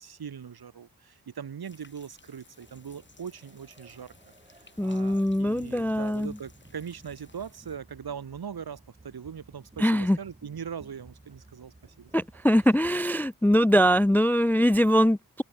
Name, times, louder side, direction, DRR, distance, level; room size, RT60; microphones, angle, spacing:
voice 1, 0.0-4.1 4.8-12.1, right 7 dB, 70° right, 2.7 m, -40 dB
sound 1, 1.6-7.8, left 3 dB, 30° left, 3.0 m, -59 dB
sound 2, 2.6-13.1, right 2 dB, 15° right, 1.6 m, -55 dB
voice 2, 4.8-6.4 9.8-10.2 12.1-15.4, equal, 5° left, 0.4 m, -22 dB
wide cardioid pair, 165°, 39 cm